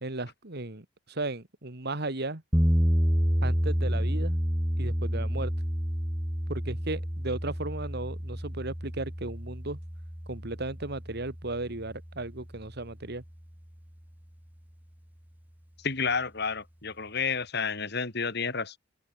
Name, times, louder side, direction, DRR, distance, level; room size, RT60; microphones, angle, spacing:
voice 1, 0.0-2.4 3.4-4.4 4.8-5.5 6.5-9.8 10.3-13.2, right 2 dB, 60° right, 2.4 m, -35 dB
sound 1, 2.5-12.6, equal, 10° right, 1.5 m, -29 dB
voice 2, 15.8-18.8, left 5 dB, 60° left, 4.1 m, -30 dB
open air
head